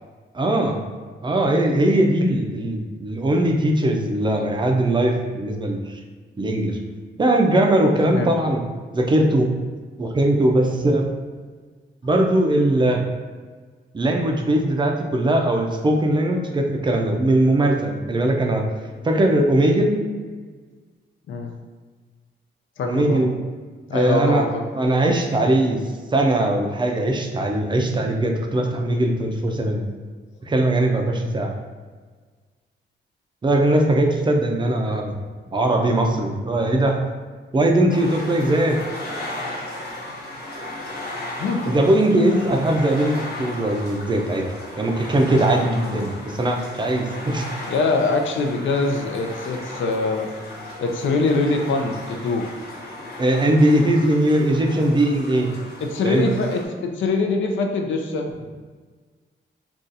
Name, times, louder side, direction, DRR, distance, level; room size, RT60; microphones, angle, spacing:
voice 1, 0.3-0.8 1.2-6.0 6.4-6.8 7.2-8.6 8.9-9.5 10.0-11.0 12.0-13.0 13.9-18.6 19.0-20.0 22.8-23.3 23.9-24.4 24.8-25.8 26.1-29.8 30.4-31.5 33.4-35.2 35.5-37.0 37.5-38.8 41.7-44.5 44.8-47.5 53.2-55.5 56.0-56.3, right 1 dB, 25° right, 2 dB, 0.4 m, -20 dB
voice 2, 22.8-23.3 23.9-24.7 29.5-29.8 41.4-41.8 47.7-50.3 50.8-52.5 55.8-58.3, left 3 dB, 80° left, 4 dB, 0.4 m, -23 dB
sound 1, 37.9-56.7, left 1 dB, 55° left, 0.8 m, -35 dB
2.6 x 2.3 x 3.9 m, 1.5 s
wide cardioid pair, 125°, 20 cm